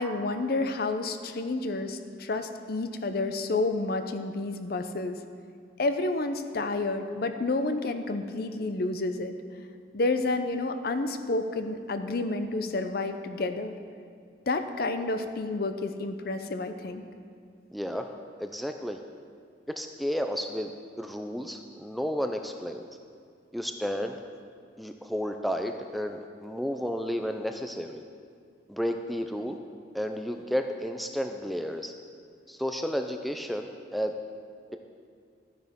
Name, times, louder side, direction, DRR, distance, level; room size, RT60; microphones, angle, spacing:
voice 1, 0.0-5.2 5.8-9.3 9.9-13.7 14.5-17.0, left 2 dB, 55° left, 8 dB, 0.6 m, -30 dB
voice 2, 17.7-18.1 18.4-19.0 19.7-20.7 21.0-22.9 23.5-24.2 24.8-28.0 28.7-29.6 29.9-31.9 32.5-34.1, equal, ahead, 4 dB, 0.4 m, -32 dB
12.0 x 9.6 x 3.6 m, 2.2 s
head